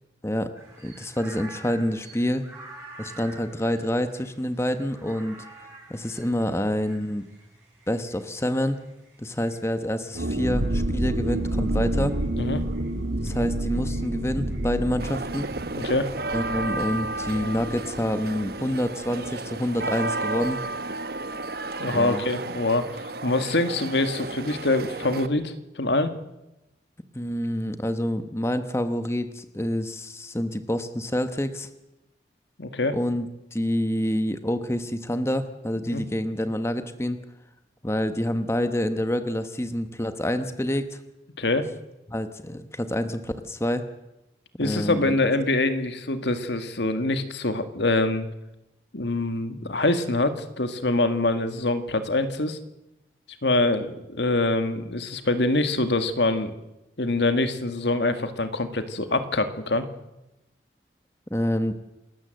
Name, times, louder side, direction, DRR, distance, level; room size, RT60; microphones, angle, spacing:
sound 1, 0.6-20.3, right 2 dB, 15° right, 6.8 m, -50 dB
voice 1, 0.8-2.5 3.0-5.4 5.9-7.2 7.9-8.8 9.2-12.1 13.2-15.5 16.3-20.6 21.9-22.2 27.1-31.7 32.9-33.3 33.5-37.2 37.8-41.0 42.1-43.8 44.6-45.1 61.3-61.7, left 1 dB, 15° left, 9 dB, 1.1 m, -27 dB
sound 2, 10.1-19.6 19.8-19.9 20.3-20.5, right 1 dB, 85° right, 1.6 m, -29 dB
sound 3, 15.0-25.3, right 2 dB, 55° right, 1.0 m, -33 dB
voice 2, 15.7-16.1 21.8-26.1 32.6-33.0 35.9-36.0 41.4-41.7 44.6-48.3 48.9-52.6 53.4-56.5 57.0-59.8, left 2 dB, 75° left, 9 dB, 1.8 m, -25 dB
28.0 x 13.5 x 7.8 m, 0.95 s
head